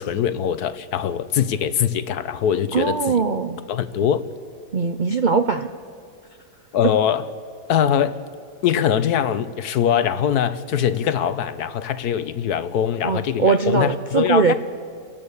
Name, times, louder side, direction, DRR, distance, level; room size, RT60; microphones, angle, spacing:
voice 1, 0.0-3.2 3.7-4.2 6.7-7.2 7.7-8.2 8.6-14.5, left 9 dB, 75° left, 14 dB, 1.3 m, -22 dB
voice 2, 2.7-3.6 4.7-5.7 13.0-14.5, right 5 dB, 50° right, 7 dB, 0.5 m, -21 dB
30.0 x 11.0 x 8.4 m, 2.2 s
omnidirectional pair, 1.7 m